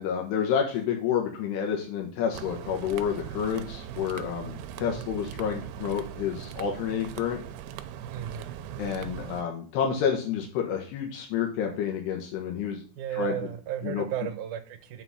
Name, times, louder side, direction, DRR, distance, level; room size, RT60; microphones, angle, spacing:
voice 1, 0.0-7.4 8.8-12.8 13.1-13.4 13.8-14.0, left 8 dB, 85° left, 1 dB, 3.3 m, -29 dB
sound 1, 2.3-9.4, right 10 dB, 90° right, 2.8 m, -40 dB
voice 2, 8.1-8.5 13.0-15.0, right 10 dB, 75° right, 9 dB, 1.8 m, -34 dB
7.8 x 4.8 x 5.7 m, 0.42 s
omnidirectional pair, 4.6 m